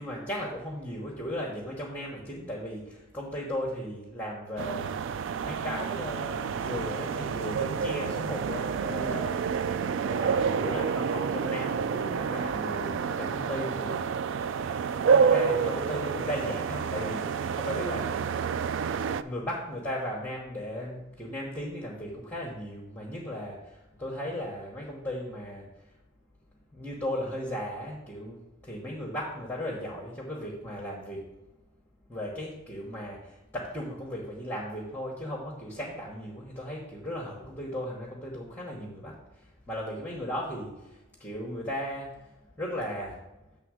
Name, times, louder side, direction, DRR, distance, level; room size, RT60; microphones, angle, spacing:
voice 1, 0.0-5.0 5.4-14.0 15.0-18.2 19.2-25.7 26.7-31.3 32.1-42.3 42.5-43.2, equal, 10° left, -5 dB, 1.1 m, -36 dB
sound 1, 4.6-19.2, right 6 dB, 60° right, 0.3 m, -29 dB
7.6 x 3.7 x 6.2 m, 1.0 s
head